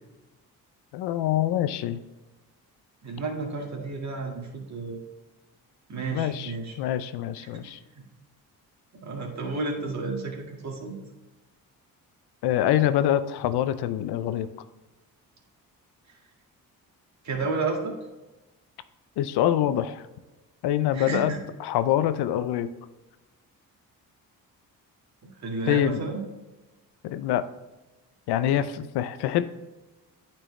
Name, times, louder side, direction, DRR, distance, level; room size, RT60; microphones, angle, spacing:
voice 1, 0.9-2.0 6.1-7.8 12.4-14.5 19.2-20.0 20.6-21.3 21.6-22.7 25.7-26.1 27.0-27.4 28.3-29.5, left 12 dB, 90° left, 13 dB, 0.5 m, -25 dB
voice 2, 3.0-5.0 5.9-6.8 7.4-8.0 9.0-11.0 17.2-17.9 20.9-21.4 25.2-26.2, right 3 dB, 45° right, 1 dB, 1.8 m, -32 dB
9.0 x 4.5 x 3.2 m, 1.1 s
cardioid pair, 70°, 38 cm